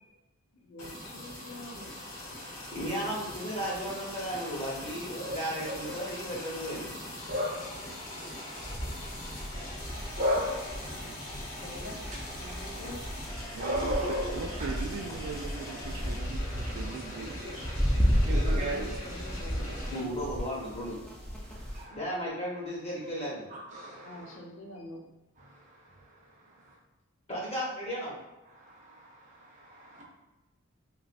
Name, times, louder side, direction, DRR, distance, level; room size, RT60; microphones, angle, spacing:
voice 1, 0.7-2.1 10.8-10.9 11.5-13.0 17.9-20.4 20.7-20.9 24.0-25.0, left 1 dB, 55° left, 0 dB, 0.5 m, -46 dB
sound 1, 0.8-20.0, left 1 dB, 85° left, 1.0 m, -41 dB
voice 2, 2.7-6.9 19.9-21.0 21.9-23.4 27.3-28.1, equal, 30° left, -5 dB, 0.8 m, -35 dB
voice 3, 5.6-6.0 7.3-7.9 8.1-8.4 10.1-10.9 11.5-11.8 12.4-12.7 13.6-14.7 17.2-17.7 18.2-18.9 21.4-22.1 23.5-24.4 25.4-26.8 28.5-30.0, equal, 35° right, -3 dB, 0.6 m, -36 dB
sound 2, 8.5-21.8, equal, 5° left, 0.3 m, -34 dB
voice 4, 13.5-14.0 14.3-17.4, right 5 dB, 75° right, 8 dB, 0.3 m, -39 dB
3.1 x 2.5 x 2.4 m, 1.1 s
head